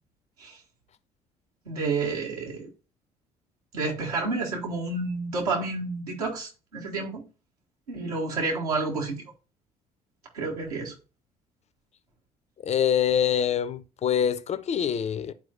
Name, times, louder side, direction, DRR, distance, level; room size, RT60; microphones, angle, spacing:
voice 1, 1.7-2.7 3.7-7.3 7.9-9.2 10.3-10.9, right 3 dB, 75° right, 1.8 m, -30 dB
voice 2, 12.6-15.3, left 9 dB, 35° left, 0.6 m, -25 dB
11.5 x 4.5 x 2.5 m
figure-of-eight pair, 50°, 20 cm